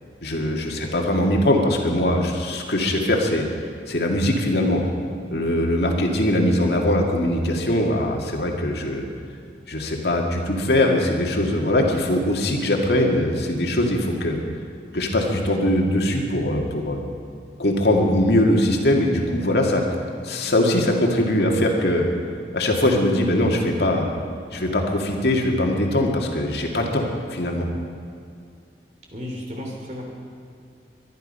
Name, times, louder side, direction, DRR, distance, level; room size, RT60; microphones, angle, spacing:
voice 1, 0.2-3.4 3.9-4.8 5.3-9.1 9.7-14.4 14.9-17.0 17.6-19.9 20.2-22.1 22.5-24.0 24.5-27.1 27.3-27.7, left 1 dB, 70° left, 1 dB, 2.2 m, -21 dB
voice 2, 29.1-30.1, left 1 dB, 40° right, -1 dB, 3.4 m, -34 dB
23.5 x 11.0 x 5.5 m, 2.4 s
head